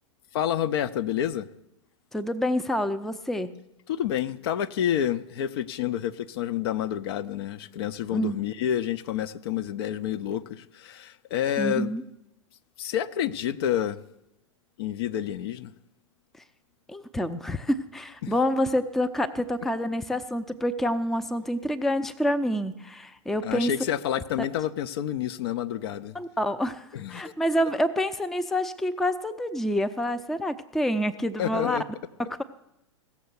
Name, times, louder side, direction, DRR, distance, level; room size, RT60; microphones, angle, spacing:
voice 1, 0.3-1.5 3.9-11.9 12.8-14.0 14.8-15.7 18.2-18.4 23.4-26.2 26.9-27.3 31.4-31.8, left 10 dB, 50° left, 0.6 m, -29 dB
voice 2, 2.1-3.5 8.1-8.4 11.6-12.0 16.9-23.7 26.1-31.8 32.2-32.4, equal, ahead, 0.5 m, -27 dB
16.0 x 7.1 x 8.0 m
figure-of-eight pair, 100°, 16 cm